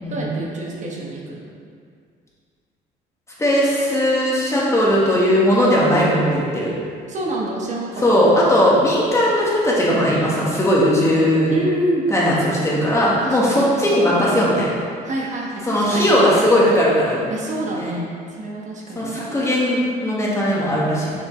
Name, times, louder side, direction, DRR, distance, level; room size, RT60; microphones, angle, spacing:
voice 1, 0.1-1.5 7.1-8.3 11.5-12.1 13.2-13.7 15.0-16.3 17.3-19.1, right 1 dB, 45° right, -3 dB, 1.2 m, -27 dB
voice 2, 3.4-6.7 8.0-11.5 12.1-14.7 15.7-17.2 17.7-17.9 19.0-21.1, equal, 15° left, -6 dB, 1.7 m, -18 dB
6.8 x 6.6 x 3.2 m, 2.1 s
cardioid pair, 110°, 17 cm